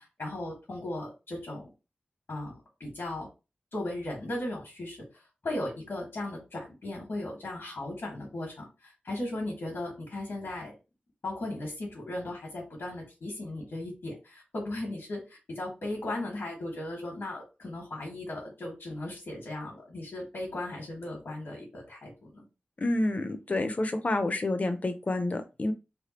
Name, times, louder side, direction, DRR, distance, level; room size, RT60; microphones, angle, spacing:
voice 1, 0.0-1.7 2.3-3.3 3.7-5.0 5.4-10.7 11.2-22.4, left 1 dB, 85° left, -1 dB, 1.4 m, -37 dB
voice 2, 22.8-25.7, left 2 dB, 40° left, 8 dB, 0.6 m, -29 dB
3.4 x 2.2 x 4.2 m, 0.28 s
wide cardioid pair, 100°, 4 cm